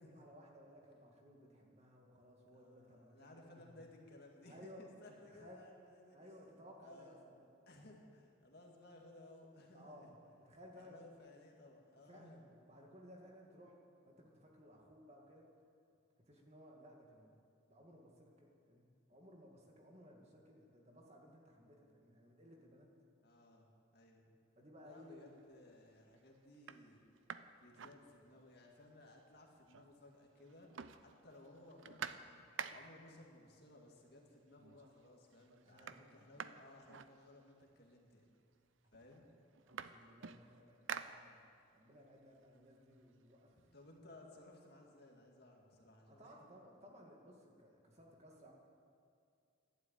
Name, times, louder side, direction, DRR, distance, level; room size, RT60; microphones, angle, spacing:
voice 1, 0.0-3.8 4.4-4.9 5.3-5.7 6.1-7.5 9.7-11.0 12.1-13.7 14.1-15.5 16.2-17.3 17.7-22.9 24.6-25.3 35.6-36.2 39.6-40.8 41.1-43.5 46.1-48.5, equal, 30° right, 0 dB, 2.1 m, -59 dB
voice 2, 2.5-7.2 7.7-10.1 10.8-12.4 12.8-12.9 23.2-24.3 24.8-27.0 27.6-30.7 31.0-38.3 38.9-39.3 43.6-46.3, left 1 dB, 50° left, 0 dB, 2.1 m, -60 dB
sound 1, 25.1-25.6 26.1-26.2 26.5-28.6 29.0-29.1 29.3-30.1 30.4-33.1 34.1-34.2 34.6-35.1 35.3-37.7 38.5-38.6 38.9-41.8 42.2-43.9, right 7 dB, 65° right, 0.5 m, -50 dB
12.5 x 11.5 x 8.9 m, 2.3 s
head